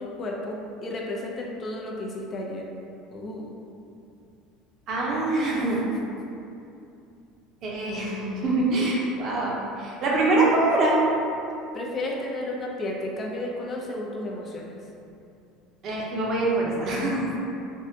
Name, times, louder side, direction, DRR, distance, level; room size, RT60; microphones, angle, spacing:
voice 1, 0.0-2.6 3.1-3.5 5.8-6.4 11.7-14.8, left 1 dB, 30° left, -1 dB, 0.5 m, -33 dB
voice 2, 4.9-5.8 7.6-11.0 15.8-17.4, right 2 dB, 50° right, -4 dB, 0.7 m, -24 dB
3.5 x 2.1 x 2.7 m, 2.6 s
supercardioid pair, 115°, 0 cm